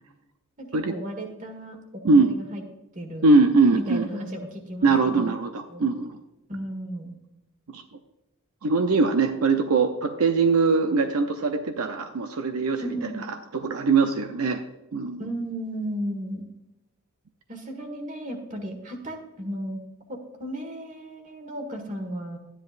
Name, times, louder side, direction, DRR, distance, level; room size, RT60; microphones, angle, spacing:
voice 1, 0.6-1.8 2.1-2.6 3.0-3.4 3.7-5.3 5.7-6.0 6.5-7.1 12.8-13.3 15.2-16.5 17.5-19.8 20.1-22.4, equal, 35° right, 4 dB, 1.6 m, -34 dB
voice 2, 3.2-4.1 4.8-6.2 7.7-7.8 8.6-13.1 13.5-14.6 14.9-15.2, right 3 dB, 75° right, 6 dB, 0.7 m, -21 dB
12.5 x 10.0 x 2.5 m, 0.97 s
head